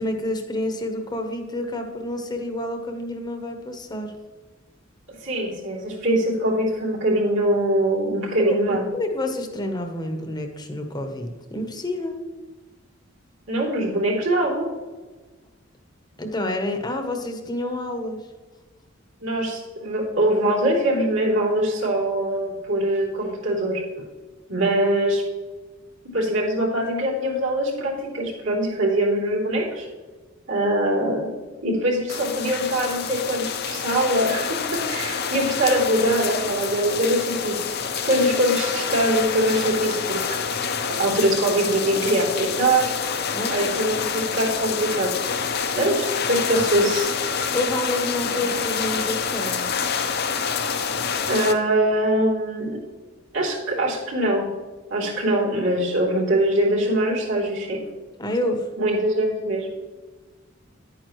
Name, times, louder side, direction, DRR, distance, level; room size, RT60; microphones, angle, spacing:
voice 1, 0.0-4.1 8.4-8.5 8.9-12.2 16.2-18.2 43.3-43.5 43.8-43.9 45.9-46.0 46.5-46.7 47.5-49.8 58.2-58.7, left 1 dB, 20° left, 5 dB, 0.9 m, -28 dB
voice 2, 5.1-8.9 13.5-14.7 19.2-23.8 24.5-25.2 26.0-29.9 30.5-31.3 31.6-40.4 40.9-42.9 43.5-45.2 45.7-47.1 51.3-52.8 53.3-54.5 54.9-57.8 58.8-59.8, right 1 dB, 70° right, -3 dB, 3.2 m, -23 dB
sound 1, 32.1-51.5, left 6 dB, 55° left, 0.7 m, -27 dB
10.5 x 9.1 x 3.1 m, 1.2 s
head